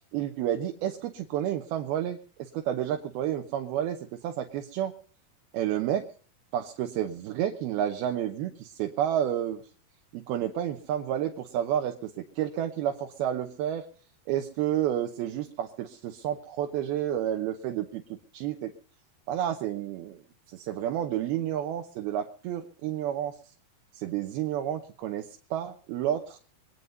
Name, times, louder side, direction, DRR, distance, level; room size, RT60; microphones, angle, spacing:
voice 1, 0.1-4.9 5.5-6.0 6.5-9.6 10.1-13.8 14.3-18.0 18.3-18.7 19.3-20.2 20.5-23.4 23.9-26.4, right 11 dB, 85° right, 4 dB, 2.9 m, -30 dB
23.5 x 9.6 x 5.4 m, 0.42 s
omnidirectional pair, 4.3 m